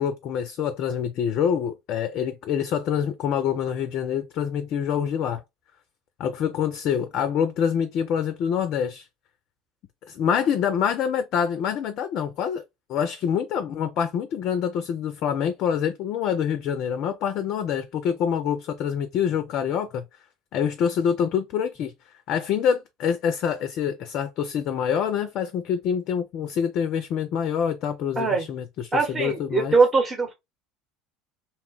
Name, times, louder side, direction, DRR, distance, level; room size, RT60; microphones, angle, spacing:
voice 1, 0.0-5.4 6.2-9.1 10.1-12.6 12.9-20.1 20.5-21.9 22.3-29.7, left 8 dB, 50° left, 0.3 m, -26 dB
voice 2, 28.2-28.5 28.9-30.3, right 4 dB, 30° right, 0.9 m, -21 dB
2.8 x 2.1 x 3.0 m
figure-of-eight pair, 70°, 0 cm